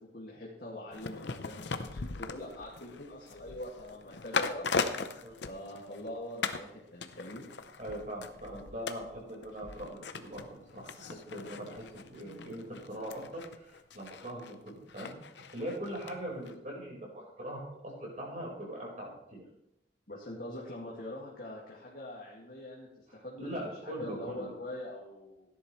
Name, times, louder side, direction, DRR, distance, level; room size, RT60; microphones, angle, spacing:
voice 1, 0.1-4.7 5.5-7.5 20.1-22.9 23.2-25.5, left 1 dB, 50° left, -4 dB, 2.2 m, -43 dB
sound 1, 0.9-6.1 6.4-6.7 7.0-16.1 16.5-16.6, left 4 dB, 65° left, 0.7 m, -39 dB
voice 2, 7.8-19.4 23.1-24.5, equal, 40° right, -2 dB, 4.6 m, -41 dB
17.0 x 10.5 x 3.2 m, 0.84 s
head